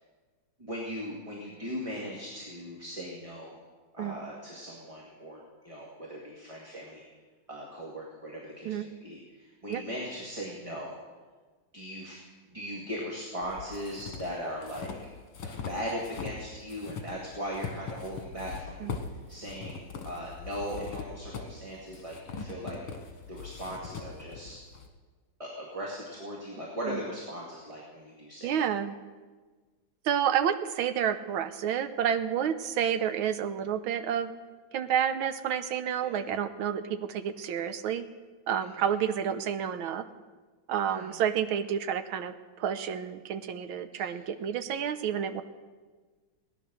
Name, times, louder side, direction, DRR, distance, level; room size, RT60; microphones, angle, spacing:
voice 1, 0.6-3.6 3.9-7.1 7.5-11.0 11.7-12.2 12.5-14.9 15.4-18.9 19.3-22.8 23.3-24.6 25.4-28.7 36.0-36.2 40.9-41.1 43.9-44.0, equal, 15° right, -4 dB, 2.2 m, -39 dB
sound 1, 13.4-16.4 16.7-24.9, left 5 dB, 70° left, 2.2 m, -41 dB
voice 2, 28.4-28.9 30.0-34.3 34.7-38.0 38.5-40.0 40.7-42.3 42.6-45.4, right 9 dB, 75° right, 10 dB, 1.6 m, -29 dB
18.0 x 10.5 x 6.3 m, 1.4 s
omnidirectional pair, 2.3 m